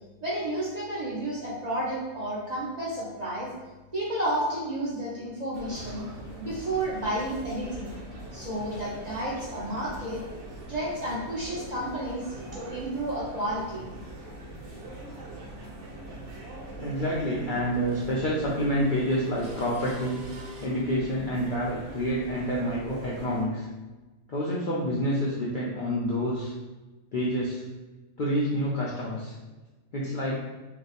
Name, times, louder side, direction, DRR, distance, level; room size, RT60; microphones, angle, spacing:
voice 1, 0.2-3.5 3.9-6.0 6.4-7.9 8.3-10.2 10.7-13.9, right 1 dB, 45° right, -7 dB, 0.6 m, -31 dB
sound 1, 5.5-23.4, right 1 dB, 60° right, 1.0 m, -42 dB
voice 2, 16.8-20.2 20.6-23.7 24.3-26.5 27.1-27.6 28.2-29.3 29.9-30.4, equal, 90° left, -5 dB, 0.4 m, -28 dB
sound 2, 17.7-20.7, left 2 dB, 80° right, 1.0 m, -48 dB
2.6 x 2.2 x 4.0 m, 1.2 s
omnidirectional pair, 1.5 m